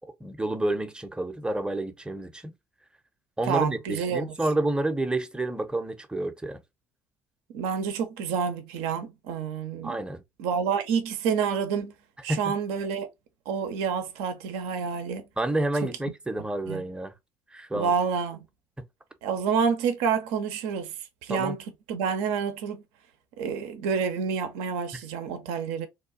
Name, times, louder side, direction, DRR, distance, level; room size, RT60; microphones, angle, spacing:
voice 1, 0.2-2.5 3.4-6.6 9.8-10.2 12.3-12.5 15.4-17.1 17.5-17.9 21.3-21.6, right 2 dB, 10° right, 0.6 m, -29 dB
voice 2, 3.5-4.4 7.5-10.0 10.4-11.9 12.2-13.1 13.5-15.2 15.8-15.9 16.7-16.8 17.7-18.4 19.2-21.6 21.9-22.8 23.4-25.9, right 6 dB, 65° right, 0.5 m, -28 dB
2.9 x 2.2 x 2.5 m
figure-of-eight pair, 50°, 11 cm